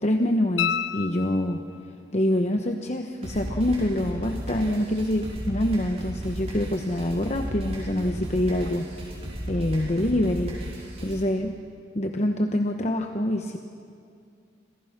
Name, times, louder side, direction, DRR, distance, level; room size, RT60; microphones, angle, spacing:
voice 1, 0.0-1.6 2.1-9.2 9.5-11.6 11.9-13.6, left 1 dB, 35° left, 4 dB, 1.0 m, -26 dB
sound 1, 0.6-1.9 4.7-4.8, left 9 dB, 75° left, 0.7 m, -30 dB
sound 2, 3.2-11.2, equal, 35° right, 5.3 m, -35 dB
27.5 x 27.0 x 6.0 m, 2.4 s
head